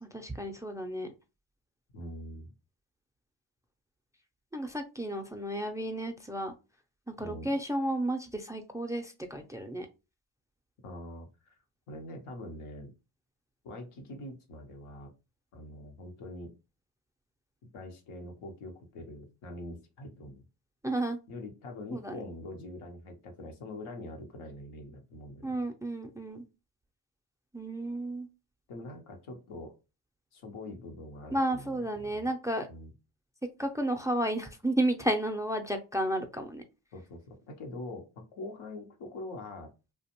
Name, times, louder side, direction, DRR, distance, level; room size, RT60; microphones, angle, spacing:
voice 1, 0.0-1.1 4.5-6.5 7.1-9.9 20.8-21.2 21.9-22.2 25.4-26.4 27.5-28.3 31.3-32.7 33.6-36.6, right 1 dB, 5° right, 5 dB, 0.4 m, -32 dB
voice 2, 1.9-2.5 7.2-7.5 10.8-11.6 11.9-12.9 13.6-15.1 15.5-16.5 17.7-20.4 21.3-25.6 28.7-29.8 30.3-32.3 32.7-32.9 36.9-39.7, left 1 dB, 80° left, 3 dB, 0.8 m, -44 dB
2.5 x 2.2 x 2.8 m, 0.28 s
supercardioid pair, 45°, 48 cm